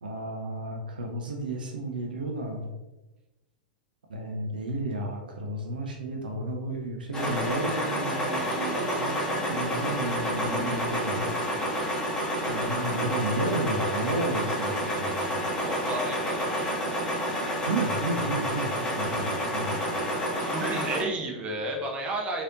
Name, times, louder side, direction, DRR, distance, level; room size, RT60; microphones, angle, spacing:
voice 1, 0.0-2.7 4.1-9.2 9.5-11.3 12.5-15.4 17.7-19.9, right 2 dB, 70° right, 2 dB, 0.5 m, -32 dB
sound 1, 7.1-21.0, equal, 15° left, 1.0 m, -29 dB
voice 2, 15.5-17.0 20.4-22.4, right 2 dB, 25° right, 0 dB, 0.6 m, -32 dB
3.2 x 2.8 x 2.4 m, 1.0 s
figure-of-eight pair, 95°, 5 cm